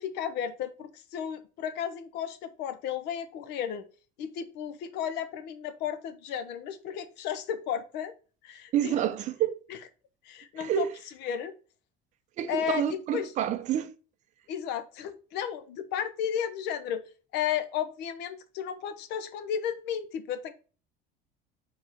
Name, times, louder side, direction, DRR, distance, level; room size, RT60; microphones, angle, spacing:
voice 1, 0.0-3.8 4.2-8.1 8.4-9.0 9.7-9.8 10.2-10.9 11.2-11.5 12.5-13.3 14.5-17.0 17.3-20.5, left 9 dB, 55° left, 0.8 m, -33 dB
voice 2, 8.7-9.6 10.7-10.9 12.4-13.9, right 10 dB, 35° right, 0.6 m, -28 dB
4.7 x 4.7 x 4.5 m
cardioid pair, 175°, 21 cm